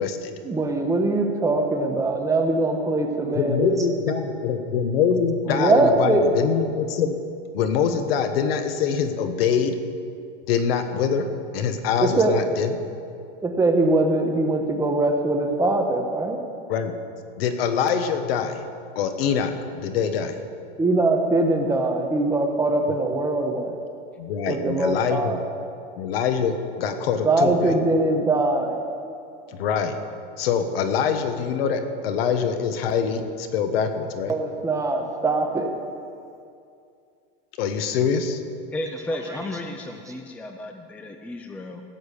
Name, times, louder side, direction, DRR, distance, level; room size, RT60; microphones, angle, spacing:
voice 1, 0.4-4.3 5.1-6.3 12.0-12.4 13.4-16.4 20.8-23.8 24.5-25.5 27.2-28.8 34.3-35.7 39.2-39.6, right 2 dB, 10° right, 3 dB, 1.0 m, -22 dB
voice 2, 3.3-7.2 7.5-9.8 10.5-11.2 11.5-12.8 16.7-16.9 17.4-18.6 18.9-19.5 19.8-20.4 24.2-25.4 26.0-27.7 29.5-30.0 30.4-34.3 37.6-38.4, left 7 dB, 75° left, 8 dB, 1.5 m, -24 dB
voice 3, 38.7-41.8, left 1 dB, 5° left, 5 dB, 0.5 m, -33 dB
16.5 x 8.1 x 6.9 m, 2.4 s
supercardioid pair, 150°, 30 cm